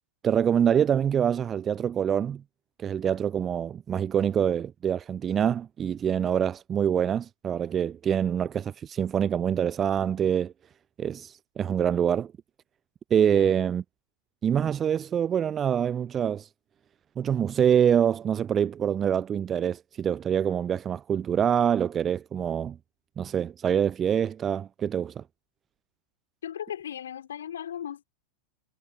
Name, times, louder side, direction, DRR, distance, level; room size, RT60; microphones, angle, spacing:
voice 1, 0.2-2.4 2.8-10.5 11.0-12.3 13.1-13.8 14.4-16.5 17.2-22.8 23.2-25.2, right 8 dB, 25° right, 0.5 m, -25 dB
voice 2, 13.3-13.6 26.4-28.0, left 9 dB, 65° left, 4.0 m, -37 dB
figure-of-eight pair, 90°, 0 cm